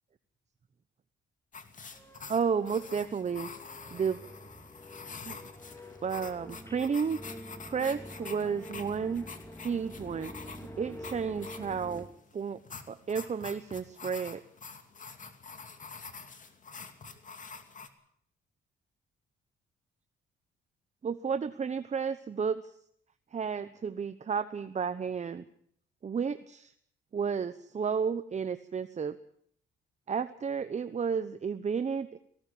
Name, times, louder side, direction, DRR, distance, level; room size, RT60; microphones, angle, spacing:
sound 1, 1.5-17.9, left 5 dB, 40° left, 2.6 m, -47 dB
sound 2, 1.9-12.0, equal, 15° left, 3.0 m, -47 dB
voice 1, 2.3-3.5 3.9-4.2 5.3-5.4 6.0-7.2 7.7-9.2 9.6-10.3 10.8-12.1 12.3-12.6 12.9-14.4 21.0-22.6 23.3-25.4 26.0-26.7 27.1-29.2 30.1-32.1, right 6 dB, 35° right, 11 dB, 1.0 m, -32 dB
19.0 x 17.5 x 8.6 m, 0.66 s
cardioid pair, 90°, 20 cm